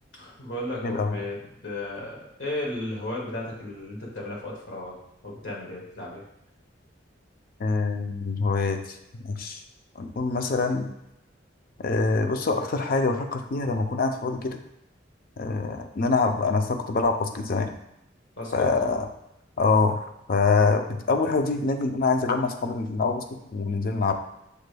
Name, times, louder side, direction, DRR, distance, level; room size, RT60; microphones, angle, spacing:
voice 1, 0.1-4.9 5.2-6.2 18.4-18.7, left 1 dB, 80° left, -3 dB, 1.5 m, -34 dB
voice 2, 0.8-1.2 7.6-9.6 10.0-10.9 11.8-14.6 15.4-17.7 18.5-19.1 19.6-20.0 20.3-23.2 23.5-24.1, left 4 dB, 50° left, 6 dB, 0.4 m, -25 dB
6.6 x 3.3 x 2.2 m, 0.83 s
head